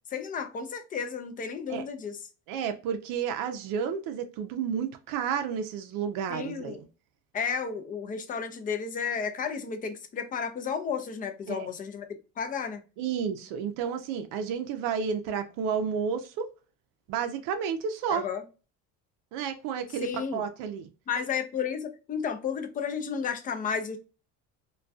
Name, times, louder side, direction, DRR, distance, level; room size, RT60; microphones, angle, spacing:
voice 1, 0.1-2.2 6.3-6.8 7.3-12.1 12.4-12.8 18.1-18.4 20.0-20.4 21.1-24.0, left 6 dB, 25° left, 0.4 m, -32 dB
voice 2, 2.5-6.8 11.5-11.7 13.0-16.5 17.1-18.3 19.3-20.9, right 7 dB, 80° right, 0.5 m, -31 dB
2.2 x 2.2 x 2.5 m
cardioid pair, 135°, 33 cm